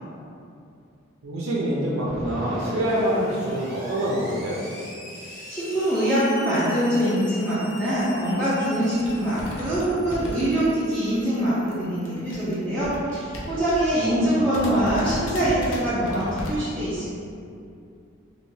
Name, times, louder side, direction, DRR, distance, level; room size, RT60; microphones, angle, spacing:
voice 1, 1.2-4.6 13.9-14.6, equal, 80° right, -5 dB, 0.4 m, -26 dB
Screech, 2.1-12.5, equal, 30° left, 1.2 m, -41 dB
voice 2, 5.5-17.1, right 1 dB, 5° left, -13 dB, 0.5 m, -24 dB
sound 1, 7.7-7.9 8.4-8.5 8.7-11.1 11.3-14.0 14.3-14.4 14.5-16.5, equal, 75° left, 0.5 m, -35 dB
3.3 x 2.6 x 2.6 m, 2.5 s
head